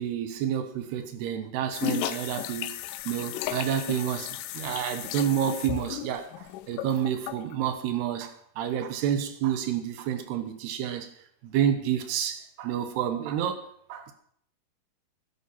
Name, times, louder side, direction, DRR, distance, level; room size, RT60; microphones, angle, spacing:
voice 1, 0.0-2.8 3.1-11.1 11.4-14.1, right 9 dB, 85° right, 8 dB, 3.2 m, -29 dB
sound 1, 1.7-7.6, left 14 dB, 90° left, 1.9 m, -34 dB
13.0 x 11.0 x 6.1 m, 0.65 s
omnidirectional pair, 4.6 m